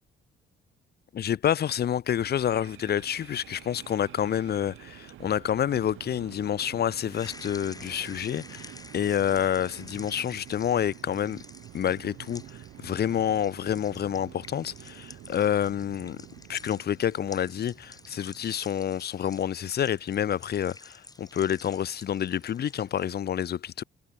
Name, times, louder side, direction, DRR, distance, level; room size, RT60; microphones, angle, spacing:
voice 1, 1.1-11.4 11.7-12.4 12.8-16.2 16.5-23.8, left 9 dB, 55° left, 1.0 m, -28 dB
sound 1, 2.3-18.6, right 14 dB, 85° right, 2.6 m, -48 dB
sound 2, 7.1-23.2, left 3 dB, 20° left, 4.1 m, -50 dB
cardioid pair, 90°, 20 cm